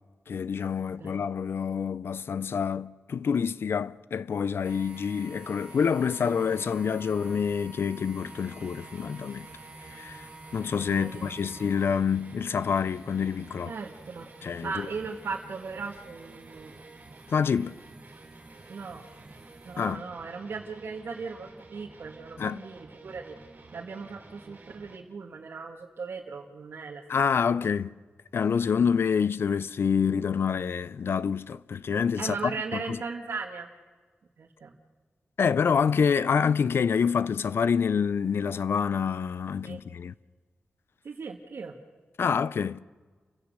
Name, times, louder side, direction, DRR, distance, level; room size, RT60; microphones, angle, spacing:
voice 1, 0.3-9.5 9.9-10.2 10.5-13.7 14.4-14.9 17.3-17.8 19.8-20.0 22.4-22.6 27.1-27.9 28.3-33.0 35.4-40.1 42.2-42.8, left 6 dB, 75° left, 0.6 m, -27 dB
sound 1, 4.6-19.9, right 2 dB, 30° right, 3.5 m, -50 dB
sound 2, 8.2-25.0, right 3 dB, 50° right, 3.3 m, -50 dB
voice 2, 10.9-11.4 13.7-16.8 18.7-19.0 19.6-23.4 23.7-27.0 27.4-27.6 28.8-28.9 32.2-33.7 34.4-34.7 39.6-39.8 41.0-41.7, right 5 dB, 75° right, 1.8 m, -38 dB
29.5 x 16.0 x 6.6 m
wide cardioid pair, 140°, 4 cm